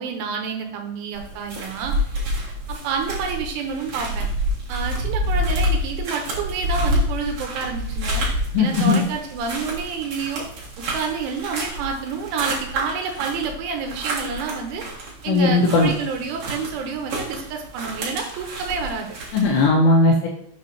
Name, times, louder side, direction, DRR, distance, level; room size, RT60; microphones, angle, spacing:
voice 1, 0.0-1.9 2.7-4.3 4.7-8.3 8.6-10.5 10.8-14.8 15.2-19.2, right 5 dB, 80° right, 3 dB, 3.2 m, -29 dB
sound 1, 1.1-19.7, equal, 55° right, 2.3 m, -28 dB
voice 2, 8.5-9.0 15.3-15.9 19.3-20.3, left 3 dB, 80° left, 0 dB, 2.6 m, -17 dB
7.6 x 5.8 x 2.9 m, 0.71 s
omnidirectional pair, 5.7 m